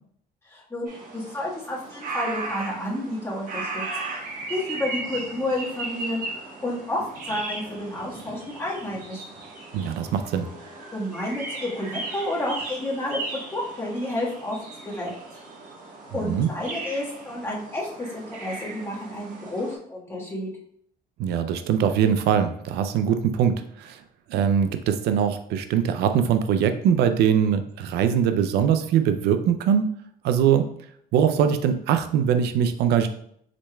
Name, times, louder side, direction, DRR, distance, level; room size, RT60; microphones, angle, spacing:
voice 1, 0.4-3.8 4.5-9.2 10.9-13.2 13.5-15.1 16.1-20.5, left 1 dB, 15° left, -5 dB, 1.6 m, -30 dB
sound 1, 0.9-19.8, right 3 dB, 55° right, 1.3 m, -36 dB
voice 2, 9.7-10.5 16.2-16.5 21.2-24.0 24.3-29.9 30.2-30.7 31.1-33.1, right 8 dB, 75° right, 9 dB, 0.4 m, -22 dB
5.0 x 4.2 x 2.3 m, 0.67 s
cardioid pair, 110°, 17 cm